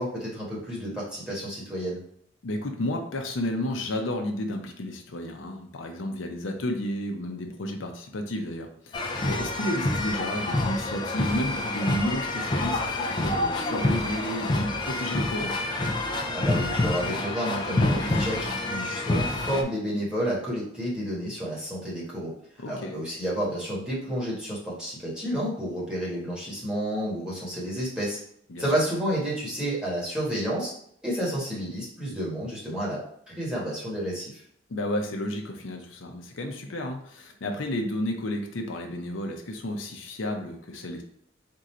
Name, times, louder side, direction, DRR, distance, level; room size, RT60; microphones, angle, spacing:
voice 1, 0.0-2.0 16.3-22.3 22.7-28.2 28.6-30.7 31.0-33.0 33.3-34.4, equal, 5° right, -7 dB, 1.4 m, -30 dB
voice 2, 2.4-15.5 22.6-23.0 28.5-28.7 34.7-41.0, left 1 dB, 85° left, 3 dB, 0.6 m, -32 dB
sound 1, 8.9-19.6, left 2 dB, 25° left, 0.4 m, -27 dB
3.7 x 2.6 x 4.3 m, 0.67 s
head